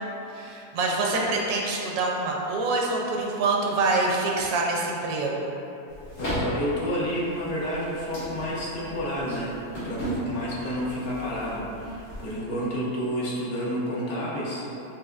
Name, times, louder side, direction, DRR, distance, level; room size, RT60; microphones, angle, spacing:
voice 1, 0.3-5.5, right 3 dB, 75° right, -1 dB, 1.1 m, -26 dB
sound 1, 5.9-12.4, equal, 90° left, 2.1 m, -36 dB
voice 2, 6.2-14.6, equal, 65° left, -7 dB, 1.2 m, -30 dB
6.1 x 2.9 x 2.4 m, 3.0 s
omnidirectional pair, 1.7 m